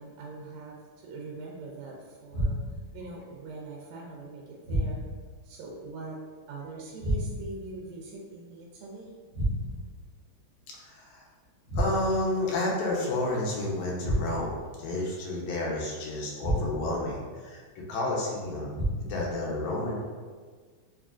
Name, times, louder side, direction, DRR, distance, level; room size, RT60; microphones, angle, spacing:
voice 1, 0.0-2.6 2.9-5.0 5.4-6.2 6.5-9.1, right 3 dB, 80° right, -2 dB, 1.8 m, -42 dB
sound 1, 2.3-2.9 4.6-5.3 7.0-7.6 9.3-10.0 11.7-12.3 14.0-14.6 16.4-17.0 18.7-19.3, right 1 dB, 55° left, 1.0 m, -30 dB
voice 2, 10.7-11.2 11.7-14.5 14.8-20.0, left 2 dB, 75° left, -3 dB, 2.1 m, -31 dB
4.8 x 3.6 x 2.4 m, 1.5 s
omnidirectional pair, 3.4 m